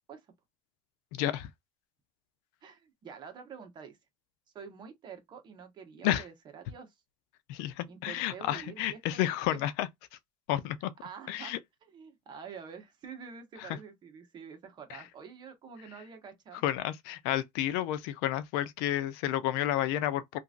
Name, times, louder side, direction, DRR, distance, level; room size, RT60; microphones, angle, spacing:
voice 1, 1.1-1.5 6.0-6.3 7.5-9.9 10.5-10.9 11.3-11.6 13.6-13.8 14.9-15.0 16.6-20.4, left 13 dB, 85° left, 0.5 m, -31 dB
voice 2, 2.6-4.0 4.5-6.9 7.9-9.2 9.5-9.6 11.0-11.5 11.8-16.6, right 6 dB, 40° right, 1.1 m, -47 dB
2.9 x 2.6 x 2.4 m
cardioid pair, 135°, 12 cm